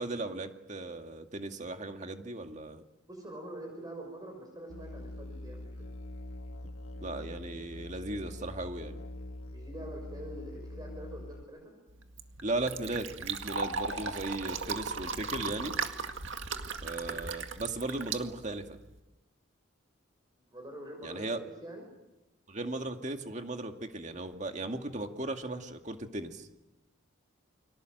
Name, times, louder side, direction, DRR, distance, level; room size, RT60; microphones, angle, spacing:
voice 1, 0.0-2.8 7.0-9.0 12.4-15.7 16.8-18.8 21.0-21.4 22.5-26.5, right 2 dB, 35° right, 5 dB, 2.2 m, -37 dB
voice 2, 3.0-5.9 8.2-8.3 9.5-11.7 16.5-16.7 20.4-21.8, right 1 dB, 20° right, 2 dB, 6.4 m, -45 dB
Musical instrument, 4.7-11.4, left 1 dB, 85° left, 2.0 m, -43 dB
Fill (with liquid), 11.9-19.0, right 5 dB, 65° right, 2.0 m, -37 dB
30.0 x 24.5 x 8.0 m, 0.97 s
head